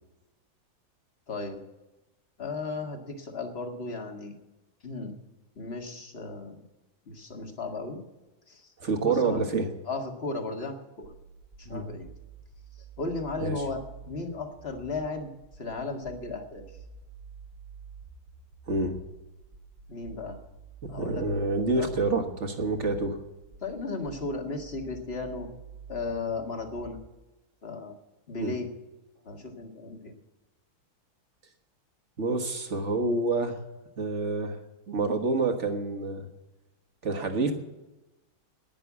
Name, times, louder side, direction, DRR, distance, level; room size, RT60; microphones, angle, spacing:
voice 1, 1.3-1.6 2.4-4.4 4.8-5.1 5.6-6.6 7.1-8.0 8.5-8.7 9.0-9.4 9.9-11.1 11.6-12.1 13.0-15.3 15.6-16.6 19.9-20.4 20.9-21.3 21.7-22.0 23.6-25.5 25.9-27.0 27.6-28.0 28.3-28.7 29.2-30.1, left 3 dB, 30° left, 3 dB, 1.9 m, -35 dB
voice 2, 8.8-9.7 11.6-11.9 13.4-13.5 18.7-19.0 20.8-23.2 28.4-28.5 32.2-33.6 34.0-34.6 34.9-36.3 37.0-37.5, right 3 dB, 40° right, 5 dB, 1.6 m, -27 dB
sound 1, 11.0-27.0, right 5 dB, 80° right, 4.9 m, -48 dB
11.5 x 10.5 x 8.3 m, 1.1 s
omnidirectional pair, 2.2 m